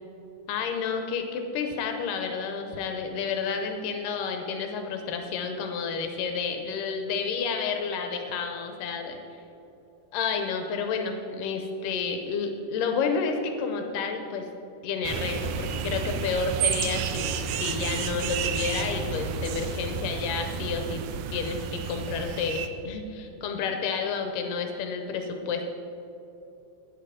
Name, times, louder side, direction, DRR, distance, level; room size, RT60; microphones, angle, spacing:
voice 1, 0.5-9.2 10.1-14.5 14.8-21.0 21.3-25.7, left 5 dB, 75° left, 5 dB, 2.3 m, -30 dB
sound 1, 15.0-22.7, right 7 dB, 85° right, 1.6 m, -31 dB
10.0 x 10.0 x 5.0 m, 2.9 s
omnidirectional pair, 4.0 m